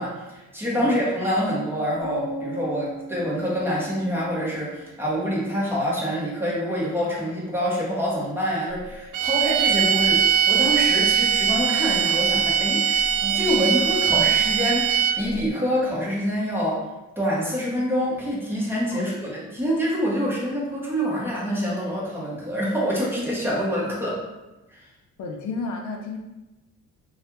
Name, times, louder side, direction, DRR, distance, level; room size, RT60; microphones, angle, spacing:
voice 1, 0.0-16.8 17.2-24.2, equal, 5° right, -6 dB, 1.1 m, -26 dB
sound 1, 2.0-5.9, right 1 dB, 50° left, 1.0 m, -38 dB
sound 2, 9.1-15.4, right 9 dB, 80° right, 0.5 m, -21 dB
voice 2, 25.2-26.2, left 4 dB, 75° left, 2 dB, 0.5 m, -32 dB
3.1 x 2.3 x 2.9 m, 1.0 s
cardioid pair, 90°, 30 cm